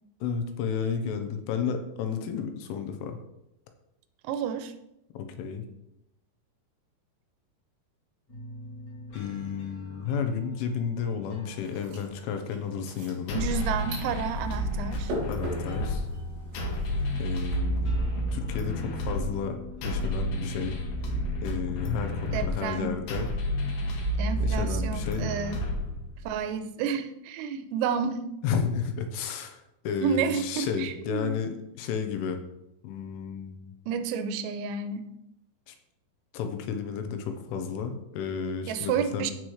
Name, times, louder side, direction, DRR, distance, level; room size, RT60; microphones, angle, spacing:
voice 1, 0.2-3.2 5.1-5.6 9.1-13.4 15.3-16.1 17.2-19.6 19.8-20.8 21.4-23.3 24.4-25.3 28.4-32.4 32.8-33.6 35.7-35.8 36.3-39.3, left 6 dB, 80° left, 6 dB, 3.2 m, -32 dB
voice 2, 4.2-4.7 13.4-15.1 22.3-23.0 24.2-25.6 26.3-28.3 30.0-31.4 33.9-35.1 38.7-39.3, right 7 dB, 90° right, 10 dB, 3.4 m, -30 dB
sound 1, 8.3-21.9, left 1 dB, 35° left, 2.1 m, -46 dB
sound 2, 11.5-17.6, right 1 dB, 60° right, 5.4 m, -41 dB
sound 3, 13.3-26.3, equal, 65° left, 2.7 m, -30 dB
14.5 x 6.1 x 3.2 m, 0.86 s
omnidirectional pair, 5.8 m